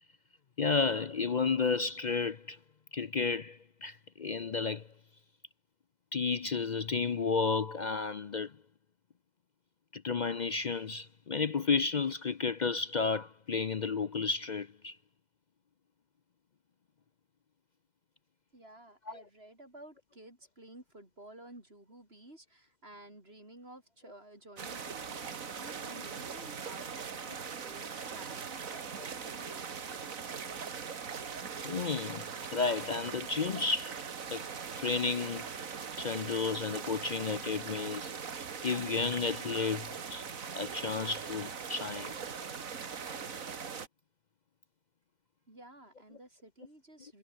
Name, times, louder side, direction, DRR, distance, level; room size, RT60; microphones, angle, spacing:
voice 1, 0.6-2.6 2.9-4.9 6.1-8.5 9.9-15.0 19.1-19.2 31.6-32.3 32.5-34.0 34.3-34.4 34.8-35.4 36.0-38.1 38.6-40.2 40.5-42.1, left 4 dB, 50° left, 0.5 m, -32 dB
voice 2, 18.5-30.3 45.5-47.2, right 1 dB, 40° right, 6.5 m, -53 dB
sound 1, 24.6-43.9, right 6 dB, 65° right, 2.1 m, -41 dB
omnidirectional pair, 1.6 m